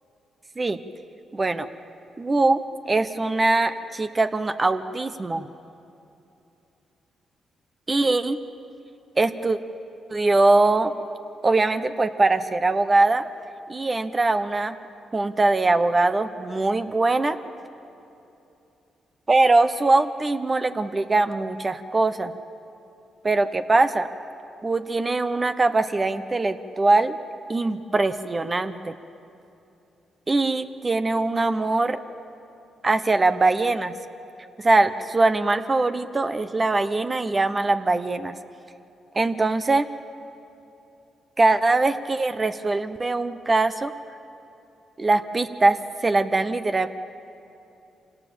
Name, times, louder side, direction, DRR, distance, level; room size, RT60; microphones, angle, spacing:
voice 1, 1.3-1.7 2.2-5.5 7.9-8.4 9.2-9.6 10.1-10.9 11.4-13.3 13.7-14.8 15.1-17.4 19.3-22.3 23.2-24.1 24.6-27.2 27.5-28.9 30.3-32.0 32.8-33.9 34.6-38.4 39.1-39.9 41.4-43.9 45.0-46.9, right 2 dB, 30° right, 10 dB, 1.0 m, -22 dB
25.5 x 18.0 x 7.1 m, 2.8 s
supercardioid pair, 55°, 0 cm